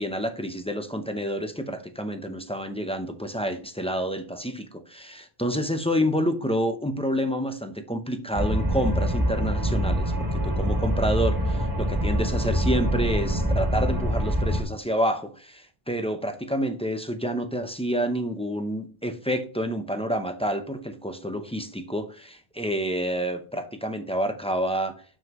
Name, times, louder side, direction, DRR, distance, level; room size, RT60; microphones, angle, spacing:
voice 1, 0.0-24.9, equal, 5° left, 6 dB, 0.5 m, -28 dB
sound 1, 8.3-14.6, equal, 20° right, 1.2 m, -25 dB
7.0 x 6.3 x 3.0 m, 0.39 s
omnidirectional pair, 1.0 m